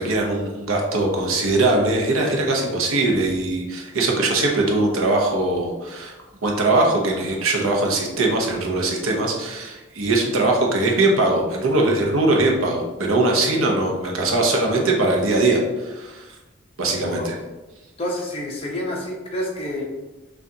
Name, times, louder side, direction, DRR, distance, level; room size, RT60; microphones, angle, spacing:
voice 1, 0.0-6.1 6.4-16.3 16.8-17.3, right 2 dB, 75° right, -1 dB, 0.8 m, -21 dB
voice 2, 18.0-19.8, left 1 dB, 25° left, -3 dB, 0.8 m, -28 dB
6.1 x 2.5 x 2.8 m, 1.1 s
head